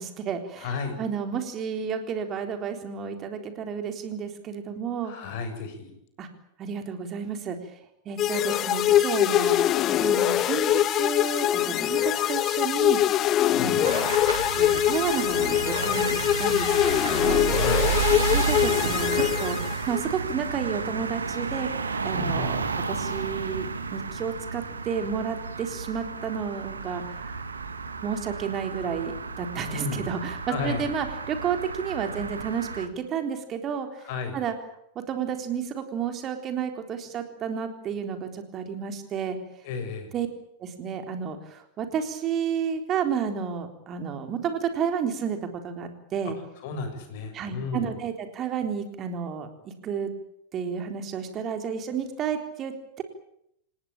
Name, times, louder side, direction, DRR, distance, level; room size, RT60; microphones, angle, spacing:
voice 1, 0.0-0.7 1.0-5.1 6.2-6.3 6.6-7.6 8.1-13.0 13.6-14.1 14.6-17.4 18.3-21.7 22.0-22.6 22.9-27.4 28.0-34.1 34.3-34.5 35.0-39.4 40.1-40.3 40.6-45.4 45.6-46.4 47.3-50.1 50.5-53.0, right 7 dB, 30° right, 6 dB, 3.8 m, -31 dB
voice 2, 0.6-1.0 5.0-5.9 13.5-13.9 17.4-17.9 22.1-22.6 29.6-30.1 30.5-30.8 34.0-34.4 39.6-40.1 46.6-47.9, left 4 dB, 50° left, 8 dB, 7.0 m, -33 dB
sound 1, 8.2-20.0, left 12 dB, 30° left, 1.0 m, -23 dB
sound 2, 13.8-32.9, right 5 dB, 75° right, 2.3 m, -31 dB
28.5 x 18.5 x 8.8 m, 0.75 s
figure-of-eight pair, 90°, 0 cm